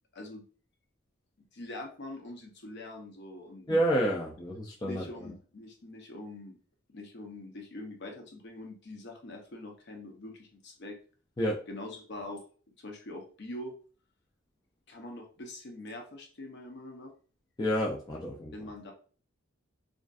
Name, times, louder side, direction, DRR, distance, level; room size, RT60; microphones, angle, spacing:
voice 1, 1.5-3.7 4.8-6.6 6.9-11.0 11.7-12.4 12.8-13.7 14.9-17.1 18.5-18.9, left 1 dB, 60° left, 2 dB, 0.6 m, -43 dB
voice 2, 3.7-5.1 11.4-11.6 17.6-18.5, equal, 20° left, -3 dB, 0.3 m, -29 dB
2.5 x 2.4 x 2.3 m, 0.40 s
head